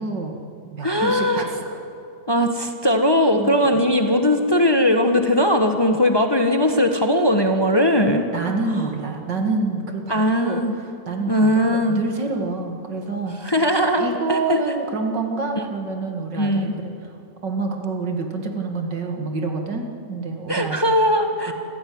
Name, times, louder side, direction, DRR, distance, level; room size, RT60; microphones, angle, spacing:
voice 1, 0.0-1.8 3.4-3.8 8.3-10.6 11.1-13.4 14.0-16.9 17.4-20.8 21.5-21.6, right 3 dB, 80° right, 3 dB, 2.8 m, -27 dB
voice 2, 0.8-1.4 2.3-8.3 10.1-10.7 11.3-12.0 13.4-14.6 16.3-16.7 20.5-21.5, equal, 15° left, 5 dB, 1.2 m, -19 dB
26.5 x 15.0 x 9.5 m, 2.5 s
omnidirectional pair, 1.9 m